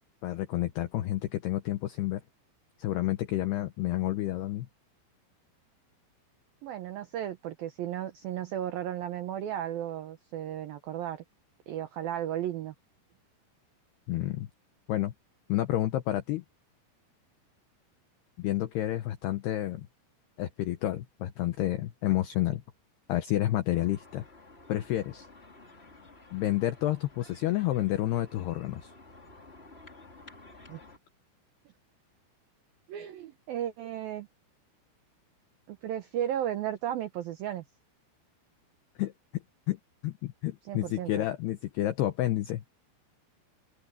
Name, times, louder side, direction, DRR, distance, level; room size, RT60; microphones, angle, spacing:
voice 1, 0.2-2.2 2.8-4.7 14.1-14.5 14.9-15.1 15.5-16.4 18.4-19.9 20.4-22.6 23.1-24.2 24.7-25.3 26.3-28.9 39.0-39.1 39.7-42.6, left 14 dB, 75° left, 2.5 m, -30 dB
voice 2, 6.6-11.2 11.7-12.7 30.7-30.8 32.9-34.3 35.7-37.6 40.6-41.1, right 11 dB, 85° right, 2.0 m, -34 dB
sound 1, 23.7-31.0, left 2 dB, 25° left, 1.3 m, -53 dB
open air
omnidirectional pair, 5.8 m